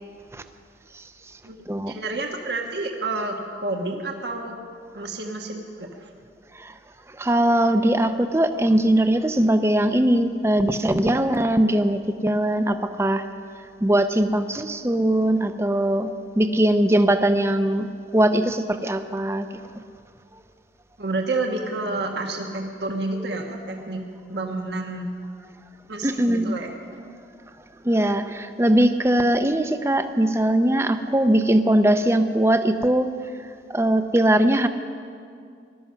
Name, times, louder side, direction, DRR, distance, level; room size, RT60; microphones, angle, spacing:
voice 1, 1.4-4.6 4.9-6.1 21.0-24.0 24.3-25.1 25.9-26.7, right 2 dB, 70° right, 2 dB, 1.3 m, -29 dB
voice 2, 7.1-13.3 13.8-17.9 18.1-19.5 26.0-26.5 27.8-33.1 33.7-34.7, right 1 dB, 15° right, 9 dB, 0.6 m, -20 dB
19.5 x 12.5 x 5.7 m, 2.3 s
head